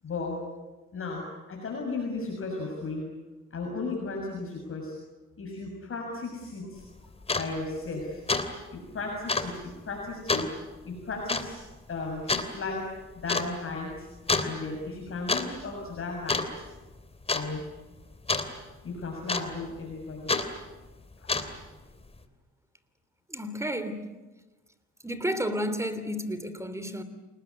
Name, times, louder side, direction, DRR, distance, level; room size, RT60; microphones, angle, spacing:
voice 1, 0.0-0.5 0.9-3.1 3.5-5.0 5.4-6.8 7.3-8.2 8.5-10.5 10.8-11.6 11.9-12.9 13.2-14.1 14.4-16.7 17.3-17.6 18.8-20.3 21.2-21.4, left 3 dB, 45° left, 6.8 m, -35 dB
sound 1, 6.8-6.9 7.2-7.5 7.9-8.0 8.3-8.5 8.7-8.8 9.3-9.5 10.3-10.5 11.3-11.5 12.3-12.5 13.3-13.5 14.3-14.5 15.1-15.5 15.7-16.0 16.3-16.8 17.3-17.5 18.3-18.5 19.3-19.7 20.3-20.5 21.1-21.6, left 3 dB, 20° left, 3.0 m, -27 dB
voice 2, 23.3-24.1 25.0-27.0, equal, 10° right, 3.1 m, -31 dB
28.5 x 20.0 x 9.7 m
cardioid pair, 90°, 30 cm